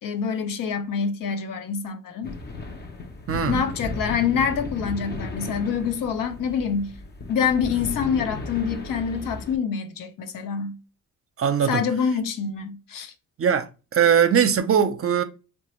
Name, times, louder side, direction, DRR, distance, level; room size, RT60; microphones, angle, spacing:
voice 1, 0.0-2.4 3.5-6.9 7.3-10.8 11.6-13.1, left 6 dB, 80° left, 0.7 m, -26 dB
sound 1, 2.2-9.6, left 3 dB, 30° left, 0.6 m, -35 dB
voice 2, 3.3-3.6 11.4-11.8 13.4-15.2, right 8 dB, 45° right, 0.6 m, -20 dB
2.9 x 2.2 x 2.9 m
cardioid pair, 75°, 32 cm